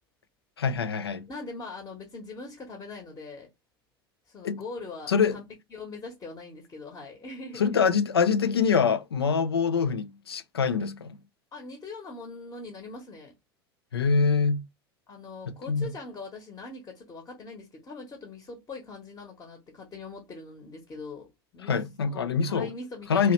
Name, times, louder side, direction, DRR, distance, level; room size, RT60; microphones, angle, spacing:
voice 1, 0.6-1.3 4.4-4.6 5.1-5.4 7.6-11.2 13.9-14.7 15.5-15.9 21.7-22.7 23.1-23.3, left 6 dB, 75° left, 0.4 m, -25 dB
voice 2, 1.3-3.5 4.3-5.4 5.7-7.8 11.5-13.3 15.1-21.8 22.1-23.3, left 3 dB, 25° left, 1.1 m, -42 dB
2.9 x 2.8 x 3.0 m
figure-of-eight pair, 75°, 13 cm